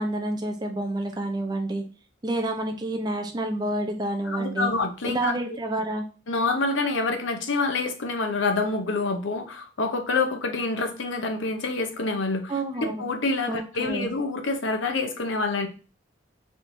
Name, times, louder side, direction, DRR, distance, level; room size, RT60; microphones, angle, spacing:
voice 1, 0.0-1.8 2.2-4.7 5.1-6.1 12.5-12.9 13.5-14.1, right 1 dB, 20° right, 3 dB, 0.5 m, -28 dB
voice 2, 4.3-5.3 6.3-15.7, left 3 dB, 75° left, 5 dB, 0.7 m, -27 dB
4.3 x 3.5 x 2.6 m, 0.36 s
head